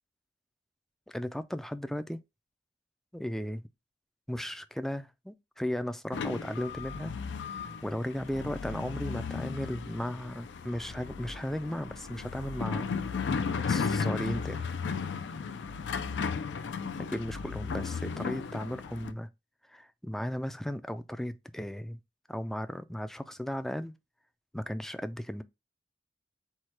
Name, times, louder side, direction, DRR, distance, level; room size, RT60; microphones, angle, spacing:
voice 1, 1.1-2.2 3.1-3.6 4.3-7.1 7.4-12.9 13.7-14.7 17.1-19.3 19.7-22.0 22.3-24.0 24.5-25.4, equal, ahead, 0.3 m, -36 dB
sound 1, 6.1-19.1, left 5 dB, 80° left, 0.4 m, -35 dB
4.7 x 2.2 x 4.2 m
head